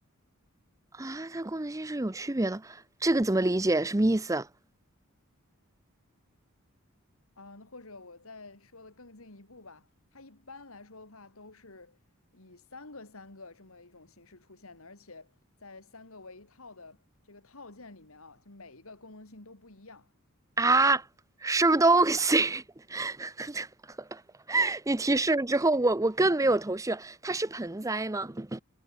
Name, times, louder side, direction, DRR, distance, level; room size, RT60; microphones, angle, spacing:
voice 1, 1.0-4.5 20.6-21.0 21.4-22.6 22.9-23.7 24.0-24.2 24.5-28.6, right 2 dB, 15° right, 0.7 m, -26 dB
voice 2, 7.4-12.0 12.3-20.1, left 3 dB, 70° left, 2.7 m, -50 dB
head